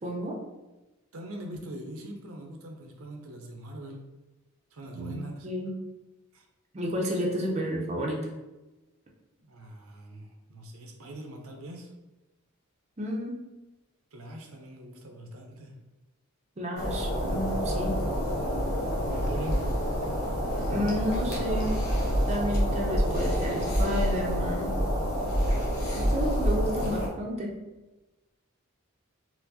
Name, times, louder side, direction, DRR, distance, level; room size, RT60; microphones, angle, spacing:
voice 1, 0.0-0.4 4.9-5.8 6.7-8.3 13.0-13.3 16.6-18.0 20.7-21.8 22.3-24.8 26.1-27.5, equal, 30° right, -2 dB, 0.5 m, -31 dB
voice 2, 1.1-4.0 4.7-5.5 6.3-6.4 9.4-11.9 14.1-15.7 19.1-19.6, right 1 dB, 80° right, 2 dB, 0.6 m, -42 dB
sound 1, 16.8-27.1, equal, 85° left, 1.0 m, -27 dB
4.3 x 2.0 x 2.7 m, 1.1 s
head